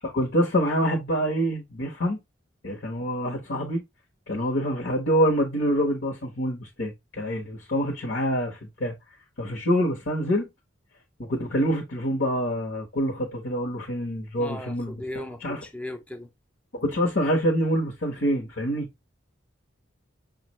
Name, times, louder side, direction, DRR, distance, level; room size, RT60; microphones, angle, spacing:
voice 1, 0.0-2.2 2.6-3.8 4.3-8.9 9.4-10.5 11.2-14.9 15.4-15.6 16.7-18.9, equal, 65° left, 1.1 m, -26 dB
voice 2, 14.4-16.3, left 1 dB, 5° left, 0.5 m, -37 dB
6.0 x 2.5 x 3.0 m
head